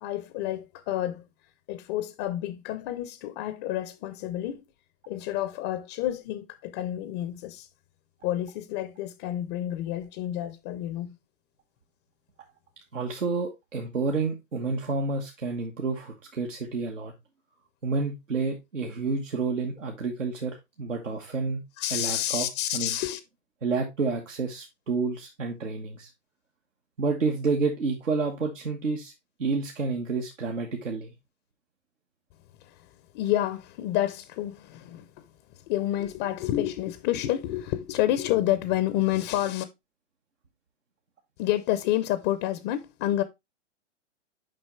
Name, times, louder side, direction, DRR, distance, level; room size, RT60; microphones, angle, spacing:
voice 1, 0.0-1.2 1.7-4.6 5.1-7.7 8.2-11.1 21.8-23.2 32.6-32.9 33.1-35.3 35.5-39.7 41.4-43.2, left 13 dB, 25° left, 0.4 m, -29 dB
voice 2, 12.9-17.1 17.8-21.6 21.9-22.5 22.7-22.9 23.6-26.1 27.0-29.1 29.4-31.1, right 4 dB, 90° right, 1.3 m, -29 dB
6.7 x 5.1 x 3.1 m
hypercardioid pair, 115°, 37 cm